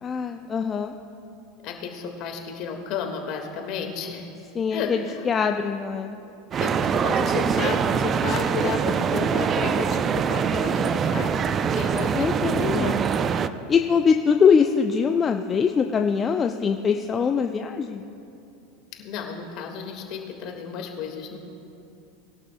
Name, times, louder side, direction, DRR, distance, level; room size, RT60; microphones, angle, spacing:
voice 1, 0.0-1.0 4.5-5.0 5.2-6.2 12.1-12.9 13.7-18.1, left 6 dB, 30° left, 5 dB, 0.5 m, -22 dB
voice 2, 1.6-4.3 4.7-5.2 6.6-11.4 11.7-13.3 19.0-21.4, left 6 dB, 50° left, 3 dB, 1.7 m, -32 dB
sound 1, 6.5-13.5, right 7 dB, 35° right, 0.4 m, -24 dB
20.5 x 11.5 x 2.2 m, 2.8 s
hypercardioid pair, 85°, 0 cm